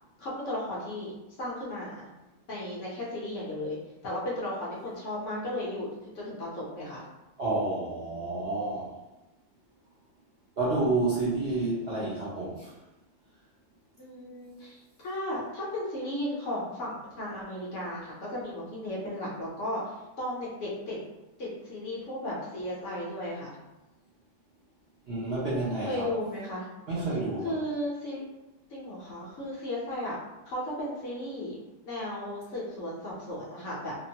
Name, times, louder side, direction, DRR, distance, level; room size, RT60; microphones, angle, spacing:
voice 1, 0.2-2.1 2.5-3.8 4.0-5.9 6.1-7.1 14.0-21.0 21.4-23.6 25.8-26.7 27.4-28.3 28.7-30.2 30.5-31.6 31.9-34.0, left 1 dB, 60° left, -6 dB, 1.0 m, -35 dB
voice 2, 7.4-8.9 10.6-12.7 25.1-26.1 26.9-27.5, right 2 dB, 55° right, -9 dB, 0.7 m, -29 dB
2.8 x 2.0 x 2.7 m, 1.0 s
omnidirectional pair, 1.6 m